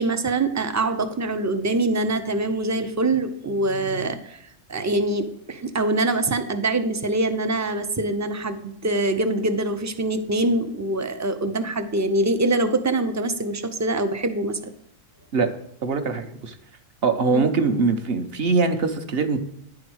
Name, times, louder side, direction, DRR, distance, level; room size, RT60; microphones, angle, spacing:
voice 1, 0.0-4.4 4.7-14.6 17.3-17.5, right 2 dB, 25° right, 8 dB, 0.3 m, -24 dB
voice 2, 15.8-16.6 17.0-19.4, right 4 dB, 55° right, 7 dB, 1.0 m, -22 dB
10.5 x 4.9 x 6.3 m, 0.72 s
omnidirectional pair, 1.4 m